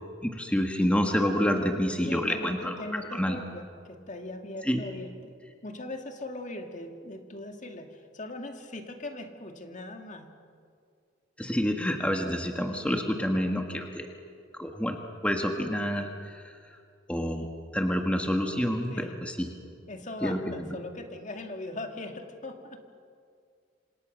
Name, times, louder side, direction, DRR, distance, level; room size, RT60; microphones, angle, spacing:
voice 1, 0.2-3.4 4.6-4.8 11.4-14.1 14.6-15.0 15.2-16.5 17.1-17.5 17.7-19.5 20.2-20.7, equal, 5° left, 3 dB, 1.7 m, -28 dB
voice 2, 2.1-5.3 5.6-10.3 18.9-19.2 19.9-22.8, left 2 dB, 40° left, 5 dB, 2.1 m, -40 dB
27.0 x 27.0 x 6.6 m, 2.3 s
head